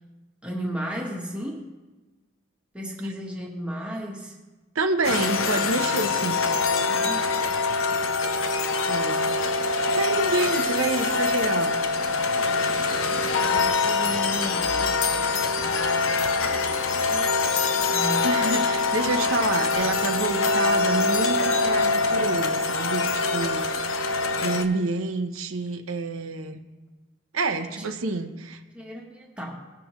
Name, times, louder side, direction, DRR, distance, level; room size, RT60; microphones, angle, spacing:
voice 1, 0.4-1.7 2.7-4.4 6.9-7.3 13.2-15.3 16.9-17.3 17.9-18.6 27.8-27.9 28.7-29.7, equal, 5° right, -2 dB, 1.2 m, -34 dB
voice 2, 4.7-6.4 8.9-9.4 9.8-11.7 18.2-23.6 24.4-26.6 27.3-28.6, right 3 dB, 90° right, 6 dB, 0.8 m, -28 dB
sound 1, 5.0-24.7, left 4 dB, 80° left, 0.7 m, -24 dB
17.5 x 6.9 x 3.1 m, 1.2 s
head